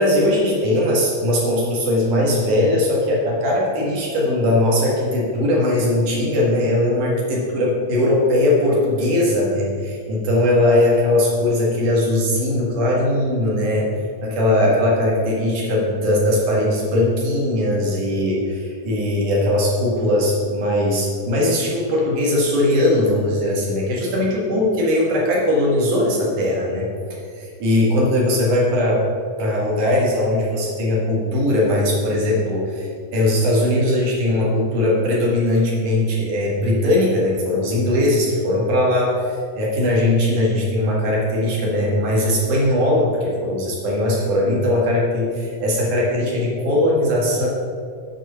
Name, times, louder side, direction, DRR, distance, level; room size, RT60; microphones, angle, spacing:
voice 1, 0.0-13.9 14.2-29.0 29.4-47.5, left 1 dB, 70° right, -3 dB, 3.3 m, -19 dB
7.7 x 7.1 x 5.7 m, 2.3 s
omnidirectional pair, 3.9 m